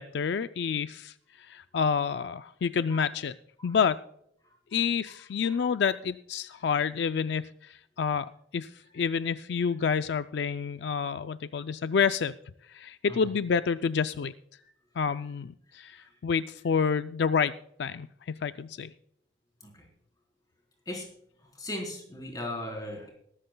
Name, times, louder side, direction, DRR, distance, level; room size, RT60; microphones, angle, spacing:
voice 1, 0.0-3.3 3.6-4.0 4.7-12.3 12.7-14.3 15.0-18.9, left 6 dB, 70° left, 12 dB, 0.4 m, -29 dB
voice 2, 4.4-4.8 5.4-5.6 8.8-9.1 13.1-13.3 15.1-15.2 15.7-16.2 16.6-16.7 19.6-19.9 20.9-21.1 21.4-23.1, left 1 dB, 20° left, 0 dB, 3.8 m, -40 dB
21.0 x 13.5 x 2.2 m, 0.71 s
head